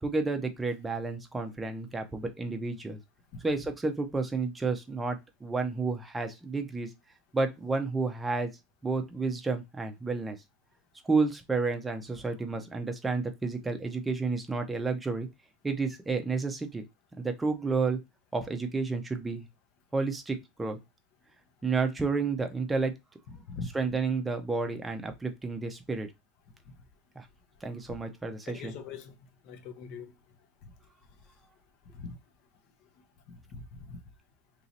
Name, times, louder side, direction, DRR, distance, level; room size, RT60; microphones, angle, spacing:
voice 1, 0.0-3.0 3.4-6.9 7.3-8.5 8.8-10.4 11.0-15.3 15.6-16.8 17.2-18.0 18.3-19.5 19.9-20.8 21.6-22.9 23.6-26.1 27.2-27.3 27.6-28.7, right 4 dB, 10° right, 0.6 m, -31 dB
voice 2, 28.5-29.1 29.4-30.1 30.6-30.7 32.0-32.1 33.5-34.0, left 4 dB, 50° left, 0.8 m, -41 dB
3.0 x 2.8 x 4.0 m
supercardioid pair, 145°, 0 cm